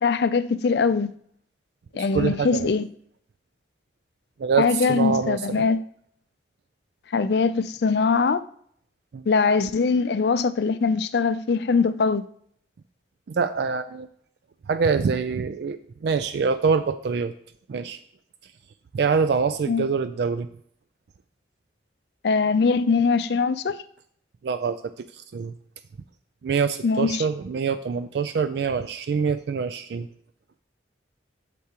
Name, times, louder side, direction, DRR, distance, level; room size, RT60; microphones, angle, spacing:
voice 1, 0.0-1.1 1.9-2.9 4.6-5.8 7.1-8.4 9.3-12.3 19.7-19.9 22.2-23.8 26.8-27.2, left 4 dB, 65° left, 0.4 m, -22 dB
voice 2, 2.1-2.7 4.4-5.7 9.1-9.2 13.3-14.1 14.7-17.3 17.7-18.0 18.9-20.5 24.4-25.5 26.4-30.1, right 5 dB, 60° right, 0.3 m, -25 dB
8.2 x 6.8 x 2.9 m
head